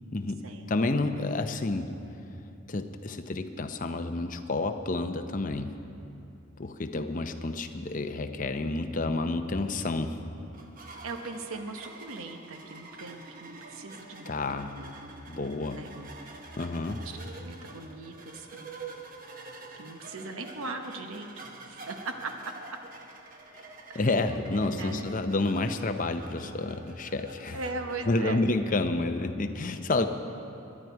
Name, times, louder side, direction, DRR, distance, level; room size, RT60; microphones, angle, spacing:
voice 1, 0.1-1.9 2.7-5.8 6.6-10.2 14.3-14.8 15.3-15.8 16.6-17.0 23.9-27.6 28.1-30.1, left 2 dB, 40° left, 7 dB, 0.6 m, -29 dB
sound 1, 10.5-28.3, right 3 dB, 40° right, 1.0 m, -47 dB
voice 2, 11.0-14.4 14.7-14.9 15.7-16.0 17.0-18.7 19.8-22.5 23.9-24.3 24.7-25.1 27.5-28.4 29.9-30.1, right 3 dB, 80° right, 5 dB, 0.9 m, -39 dB
20.5 x 11.0 x 4.6 m, 2.8 s
head